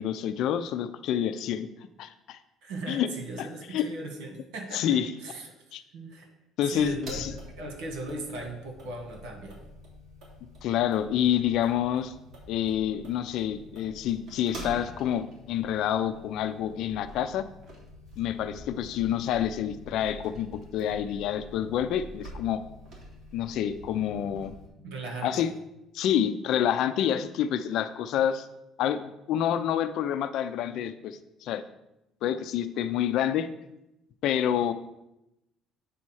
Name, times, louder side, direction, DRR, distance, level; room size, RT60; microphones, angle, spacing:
voice 1, 0.0-1.7 2.0-2.4 2.9-3.1 3.4-3.9 4.7-5.1 5.7-5.8 6.6-7.3 10.6-12.1 12.5-17.4 18.2-22.6 23.3-24.5 25.2-25.5 25.9-28.5 28.8-31.6 32.2-33.5 34.2-34.7, left 10 dB, 70° left, 11 dB, 0.6 m, -28 dB
voice 2, 2.6-4.9 5.2-5.5 5.9-6.3 6.7-7.2 7.6-9.6 24.8-25.5, right 2 dB, 90° right, 3 dB, 1.9 m, -38 dB
sound 1, 6.7-24.7, equal, 50° right, 3.0 m, -46 dB
8.4 x 4.3 x 6.4 m, 0.88 s
cardioid pair, 125°, 0 cm